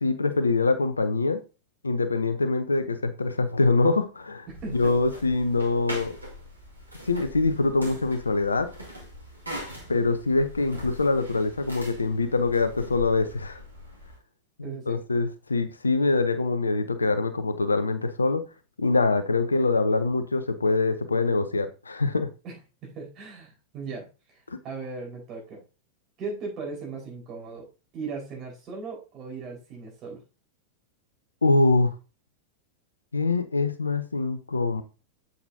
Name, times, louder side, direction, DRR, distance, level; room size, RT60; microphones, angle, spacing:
voice 1, 0.0-1.4 1.8-4.5 4.7-6.2 7.1-8.7 9.9-13.6 14.6-18.4 18.8-22.3 24.5-24.6 31.4-31.9 33.1-34.8, left 3 dB, 75° left, 12 dB, 0.7 m, -24 dB
voice 2, 4.5-4.9 14.6-15.0 22.4-22.5 22.8-24.1 24.6-25.6 26.2-27.7 27.9-30.2, right 4 dB, 35° right, -1 dB, 4.6 m, -37 dB
sound 1, 4.5-14.2, left 1 dB, 80° right, 2.0 m, -41 dB
7.8 x 6.9 x 2.7 m, 0.31 s
figure-of-eight pair, 90°, 0 cm